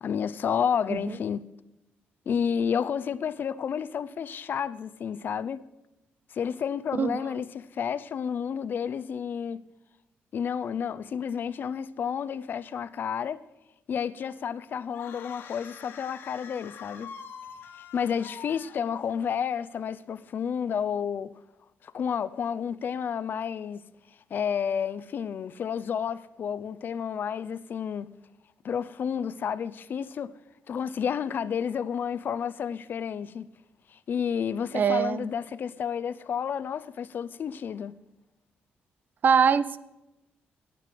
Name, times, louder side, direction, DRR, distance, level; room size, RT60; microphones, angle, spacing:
voice 1, 0.0-1.5 2.3-5.6 6.3-9.6 10.3-13.4 13.9-17.1 17.9-21.3 21.8-23.8 24.3-28.1 28.6-30.3 30.7-33.5 33.9-38.0, left 7 dB, 55° left, 0.6 m, -31 dB
sound 1, 14.9-19.3, left 7 dB, 75° left, 1.5 m, -45 dB
voice 2, 34.7-35.3 39.2-39.8, right 7 dB, 50° right, 0.7 m, -23 dB
11.0 x 9.1 x 9.4 m
cardioid pair, 90°, 4 cm